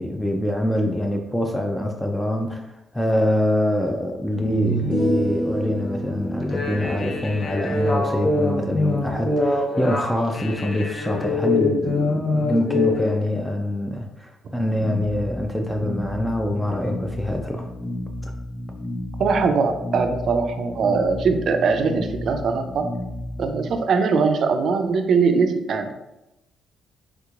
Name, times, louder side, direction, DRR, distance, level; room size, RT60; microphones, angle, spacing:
voice 1, 0.0-17.7 18.2-18.3, left 1 dB, 5° left, 2 dB, 0.3 m, -25 dB
sound 1, 3.2-3.3 4.3-9.6, equal, 75° left, 1.3 m, -30 dB
sound 2, 6.4-13.1, left 3 dB, 45° left, 0.6 m, -24 dB
sound 3, 14.7-23.7, left 1 dB, 10° right, 0.7 m, -32 dB
voice 2, 19.2-22.9 23.4-25.9, right 5 dB, 60° right, 7 dB, 0.4 m, -21 dB
3.5 x 3.0 x 2.4 m, 0.91 s
cardioid pair, 90°, 0 cm